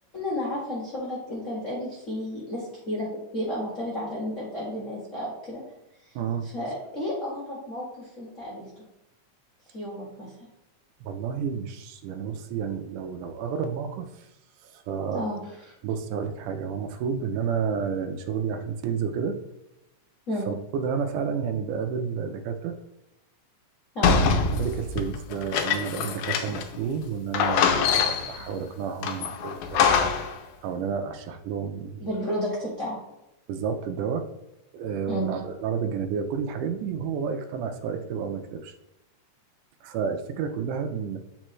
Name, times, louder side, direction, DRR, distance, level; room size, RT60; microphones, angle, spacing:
voice 1, 0.1-3.1 3.3-5.6 6.4-8.7 9.7-10.3 15.1-15.4 20.3-20.5 23.9-24.2 32.0-33.0 35.1-35.3, left 1 dB, 35° left, -6 dB, 1.3 m, -32 dB
voice 2, 6.2-6.5 11.0-14.1 14.6-15.3 15.8-19.4 20.5-22.8 24.0-30.0 30.6-32.1 33.5-34.3 34.7-38.7 39.8-41.2, right 6 dB, 80° right, 7 dB, 2.1 m, -30 dB
sound 1, 24.0-26.8 27.0-27.1 27.3-28.4 29.0-30.4, left 6 dB, 75° left, 1.8 m, -24 dB
8.6 x 4.4 x 3.1 m, 0.91 s
omnidirectional pair, 3.7 m